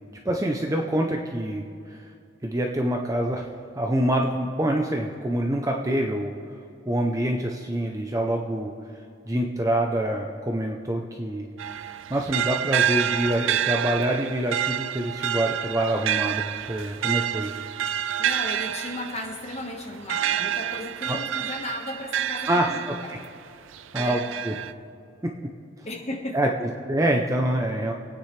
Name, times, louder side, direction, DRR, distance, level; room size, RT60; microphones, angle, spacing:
voice 1, 0.2-2.1 2.4-3.5 3.7-6.3 6.9-8.7 9.3-11.5 12.1-17.6 21.1-21.2 22.5-22.9 23.9-24.5 25.2-25.3 25.8-25.9 26.3-27.9, right 1 dB, 15° right, 1 dB, 0.6 m, -26 dB
sound 1, 11.6-23.3 23.7-24.7, right 10 dB, 75° right, 0.4 m, -28 dB
voice 2, 18.2-23.1 23.9-24.2 25.8-26.5, left 1 dB, 35° left, 2 dB, 1.4 m, -35 dB
26.0 x 9.3 x 3.3 m, 2.5 s
head